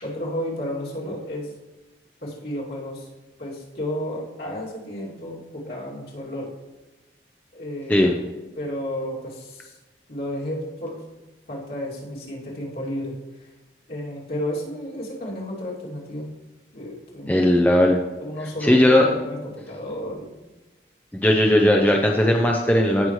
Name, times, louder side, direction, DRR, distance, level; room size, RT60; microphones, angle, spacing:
voice 1, 0.0-1.5 2.2-3.1 3.4-6.5 7.5-9.8 10.1-11.0 11.5-13.5 13.9-16.3 16.7-17.5 18.2-20.4, equal, 60° left, -4 dB, 2.7 m, -32 dB
voice 2, 17.3-18.0 18.6-19.0 21.1-23.1, left 1 dB, 10° left, 1 dB, 0.6 m, -17 dB
16.5 x 6.1 x 3.2 m, 1.2 s
head